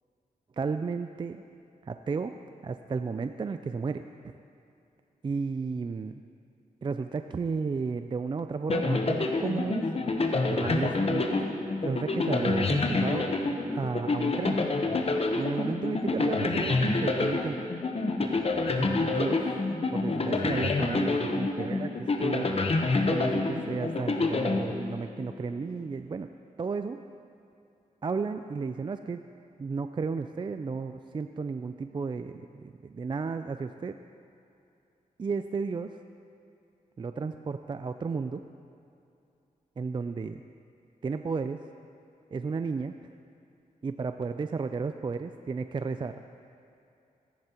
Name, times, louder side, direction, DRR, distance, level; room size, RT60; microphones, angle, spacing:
voice 1, 0.5-1.4 1.8-2.3 2.6-4.3 5.2-6.1 6.8-9.9 10.5-11.3 11.8-13.3 13.7-14.6 15.3-17.7 18.8-19.5 19.9-22.5 23.1-26.3 26.6-27.0 28.0-29.2 29.6-34.0 35.2-36.0 37.0-38.4 39.8-40.4 41.0-41.7 42.3-43.0 43.8-46.2, right 4 dB, 35° right, 8 dB, 0.4 m, -33 dB
sound 1, 8.7-25.3, left 3 dB, 40° left, 0.9 m, -28 dB
14.5 x 10.5 x 2.9 m, 2.6 s
cardioid pair, 60°, 15 cm